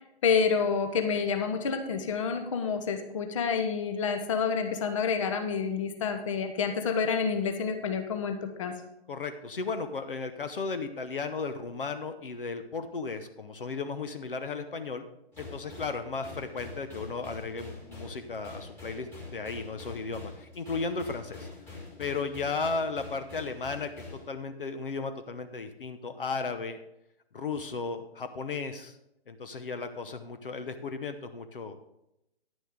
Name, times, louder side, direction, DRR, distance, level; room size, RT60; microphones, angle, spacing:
voice 1, 0.2-8.7, left 5 dB, 30° left, 6 dB, 0.9 m, -28 dB
voice 2, 9.1-15.1 15.4-21.5 22.0-26.8 27.3-29.0 29.3-31.9, left 4 dB, 55° left, 9 dB, 0.9 m, -35 dB
sound 1, 15.3-24.3, left 3 dB, 5° left, 1.9 m, -45 dB
10.5 x 9.1 x 3.7 m, 0.83 s
figure-of-eight pair, 140°, 32 cm